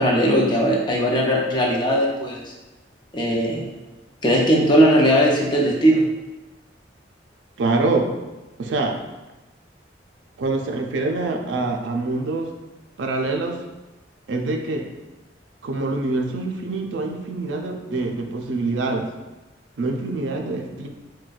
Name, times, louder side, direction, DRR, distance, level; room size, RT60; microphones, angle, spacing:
voice 1, 0.0-2.5 3.1-3.6 4.2-6.0, equal, 25° left, -2 dB, 0.5 m, -18 dB
voice 2, 7.6-8.1 8.6-9.0 10.4-12.5 13.0-13.6 14.3-14.9 15.6-19.1 19.8-20.9, right 3 dB, 80° right, 3 dB, 0.4 m, -25 dB
3.8 x 2.2 x 2.4 m, 1.1 s
head